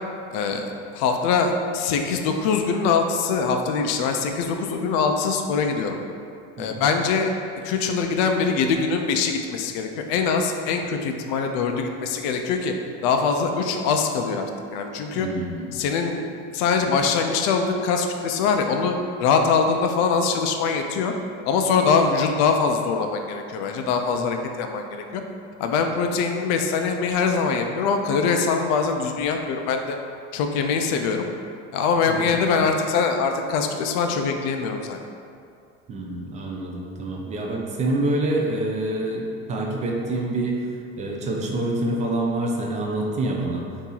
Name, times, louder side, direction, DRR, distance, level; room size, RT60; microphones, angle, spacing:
voice 1, 0.3-6.0 6.6-7.3 7.6-12.7 13.0-14.5 14.7-15.3 15.7-16.3 16.5-21.1 21.5-25.2 25.6-30.0 30.3-31.3 31.7-35.0, left 5 dB, 60° left, 4 dB, 0.4 m, -23 dB
voice 2, 15.1-15.7 32.1-32.4 35.9-43.6, right 2 dB, 25° right, -1 dB, 0.3 m, -27 dB
2.8 x 2.6 x 3.8 m, 2.4 s
cardioid pair, 140°, 33 cm